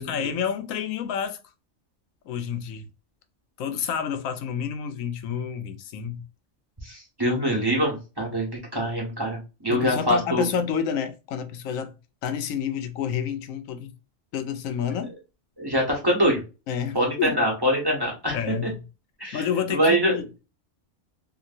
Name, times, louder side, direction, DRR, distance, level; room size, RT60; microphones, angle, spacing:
voice 1, 0.0-1.4 2.3-2.9 3.6-6.2 9.7-12.0 12.2-13.9 14.3-15.1 16.7-17.4 18.3-18.8 19.3-20.5, left 7 dB, 85° left, 1.0 m, -29 dB
voice 2, 6.8-10.5 15.6-16.4 16.9-18.4 18.6-18.7 19.2-19.4 19.7-20.2, equal, 20° right, 1.1 m, -24 dB
2.9 x 2.6 x 2.5 m
omnidirectional pair, 1.3 m